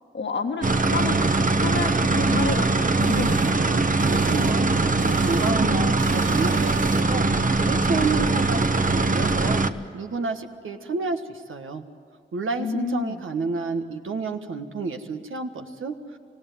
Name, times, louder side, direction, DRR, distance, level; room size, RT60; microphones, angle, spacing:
voice 1, 0.1-3.4 12.6-13.2, left 4 dB, 65° left, 4 dB, 1.7 m, -30 dB
sound 1, 0.6-9.7, right 3 dB, 40° right, 1.2 m, -21 dB
sound 2, 3.0-4.7 5.0-5.7 6.0-7.3, right 7 dB, 70° right, 0.7 m, -35 dB
voice 2, 4.0-7.3 7.5-9.6 9.9-11.8 12.3-16.2, right 4 dB, 85° right, 5 dB, 1.6 m, -30 dB
26.0 x 17.0 x 9.3 m, 2.4 s
cardioid pair, 45°, 20 cm